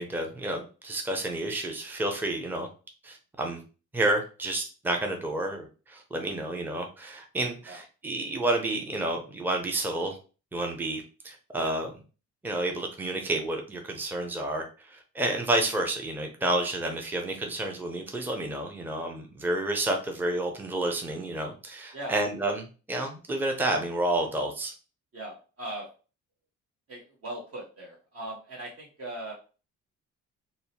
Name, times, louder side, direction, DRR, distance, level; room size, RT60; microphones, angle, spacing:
voice 1, 0.0-2.7 3.0-3.6 3.9-10.2 10.5-11.9 12.4-24.7, right 1 dB, 5° right, 2 dB, 0.5 m, -30 dB
voice 2, 25.1-25.9 26.9-29.3, right 1 dB, 50° right, -3 dB, 0.9 m, -39 dB
2.7 x 2.0 x 2.7 m, 0.35 s
cardioid pair, 90°, 30 cm